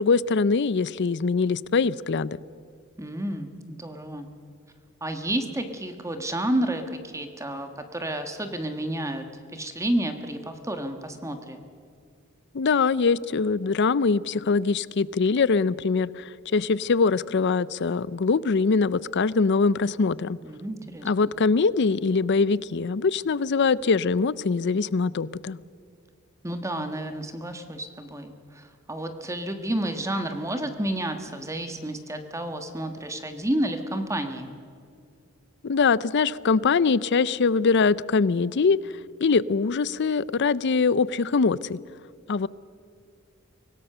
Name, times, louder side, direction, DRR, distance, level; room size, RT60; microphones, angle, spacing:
voice 1, 0.0-2.4 12.5-20.4 21.0-25.6 35.6-38.8 39.2-41.8 42.3-42.5, left 4 dB, 55° left, 20 dB, 0.5 m, -23 dB
voice 2, 3.0-4.3 5.0-9.2 9.5-11.6 20.4-21.1 26.4-34.5, right 1 dB, 15° right, 7 dB, 1.4 m, -30 dB
24.5 x 17.5 x 6.8 m, 2.2 s
head